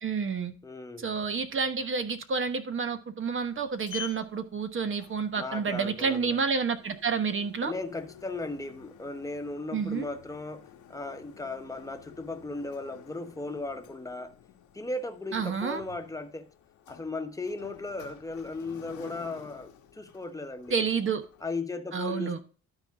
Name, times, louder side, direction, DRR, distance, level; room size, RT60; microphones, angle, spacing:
voice 1, 0.0-0.5 1.0-7.7 9.7-10.1 15.3-15.8 20.7-21.2 21.9-22.4, right 5 dB, 40° right, 1.1 m, -29 dB
voice 2, 0.6-1.2 5.4-6.4 7.6-14.3 14.7-16.5 16.9-20.9 21.4-22.4, left 2 dB, 10° left, 1.1 m, -37 dB
Sliding door, 3.3-21.5, left 8 dB, 85° left, 1.3 m, -50 dB
12.5 x 4.2 x 3.5 m
cardioid pair, 90°, 30 cm